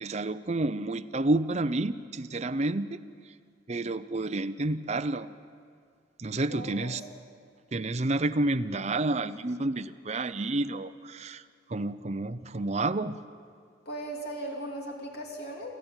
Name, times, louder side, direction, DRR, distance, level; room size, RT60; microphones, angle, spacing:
voice 1, 0.0-3.0 3.7-5.3 6.2-7.0 7.7-11.4 11.7-13.2, right 2 dB, 35° right, 10 dB, 0.7 m, -29 dB
voice 2, 6.5-7.1 13.8-15.7, right 1 dB, 60° left, 0 dB, 2.8 m, -38 dB
28.5 x 14.0 x 9.0 m, 2.1 s
head